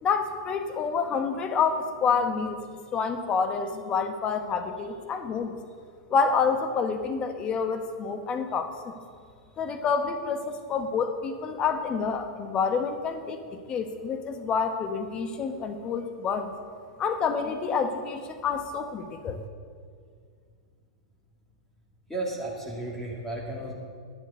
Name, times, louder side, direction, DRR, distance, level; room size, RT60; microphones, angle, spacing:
voice 1, 0.0-2.6 2.9-5.6 6.1-9.0 9.6-16.5 17.0-19.4, left 5 dB, 30° left, 7 dB, 1.1 m, -28 dB
voice 2, 22.1-23.7, right 2 dB, 5° left, -4 dB, 2.3 m, -33 dB
11.0 x 6.0 x 8.0 m, 2.1 s
hypercardioid pair, 120°, 3 cm